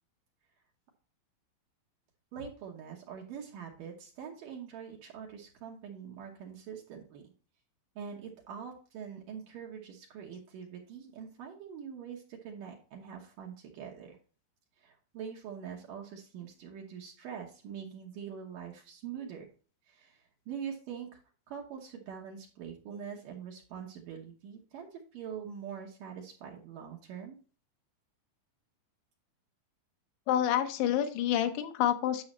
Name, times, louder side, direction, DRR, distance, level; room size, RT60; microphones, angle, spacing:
voice 1, 2.3-7.3 8.0-14.2 14.8-19.5 19.9-21.2 21.5-27.4, right 7 dB, 75° right, -1 dB, 2.0 m, -44 dB
voice 2, 30.3-32.2, left 11 dB, 75° left, 6 dB, 2.9 m, -28 dB
10.5 x 6.3 x 3.1 m, 0.38 s
omnidirectional pair, 5.5 m